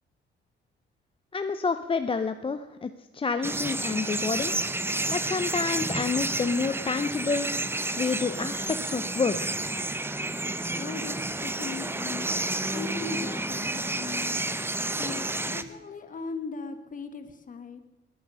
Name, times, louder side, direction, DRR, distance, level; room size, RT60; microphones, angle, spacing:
voice 1, 1.3-4.5 5.1-7.5 7.9-9.5, left 4 dB, 25° left, 9 dB, 0.7 m, -29 dB
sound 1, 3.4-15.6, right 2 dB, 10° right, 0.8 m, -30 dB
voice 2, 10.7-14.4 15.0-17.8, left 4 dB, 40° left, 8 dB, 1.7 m, -38 dB
19.5 x 9.2 x 6.3 m, 1.0 s
cardioid pair, 90°, 20 cm